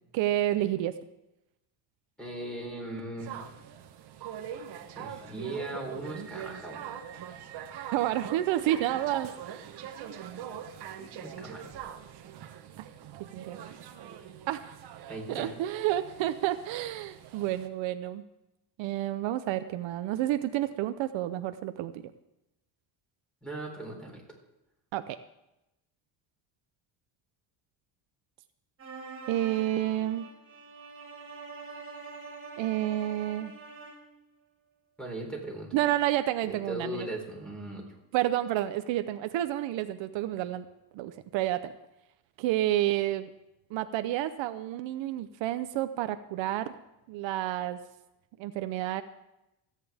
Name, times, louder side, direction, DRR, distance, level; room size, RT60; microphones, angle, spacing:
voice 1, 0.1-0.9 7.9-9.7 12.8-12.9 13.3-13.6 14.5-14.6 15.3-18.2 18.8-22.0 24.9-25.2 29.3-30.2 32.6-33.5 35.7-37.1 38.1-40.7 40.9-41.7 42.4-43.3 43.7-46.7 47.1-47.8 48.4-49.0, right 13 dB, 75° right, 10 dB, 0.8 m, -30 dB
voice 2, 2.2-3.4 4.9-6.9 11.0-11.7 15.1-15.5 23.4-24.2 35.0-35.7 36.4-38.0, right 1 dB, ahead, 0 dB, 3.8 m, -38 dB
sound 1, 3.2-17.7, right 9 dB, 55° right, 1.2 m, -43 dB
sound 2, 28.8-34.1, right 4 dB, 30° right, 3.1 m, -45 dB
27.5 x 9.4 x 3.5 m, 0.92 s
cardioid pair, 145°, 46 cm